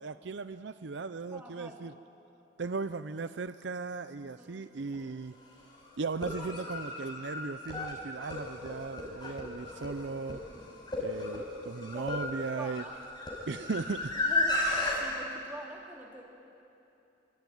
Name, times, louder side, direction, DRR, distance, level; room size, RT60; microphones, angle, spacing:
voice 1, 0.0-1.9 2.6-5.3 6.0-10.4 11.0-12.8 13.5-14.2, right 4 dB, 65° right, 0.6 m, -37 dB
voice 2, 1.3-1.9 4.2-4.7 11.9-12.3 12.6-12.9 14.1-14.7 15.0-16.2, right 1 dB, 10° right, 3.1 m, -45 dB
sound 1, 4.9-5.0 6.0-15.0, left 2 dB, 20° left, 5.2 m, -34 dB
25.5 x 25.0 x 9.3 m
head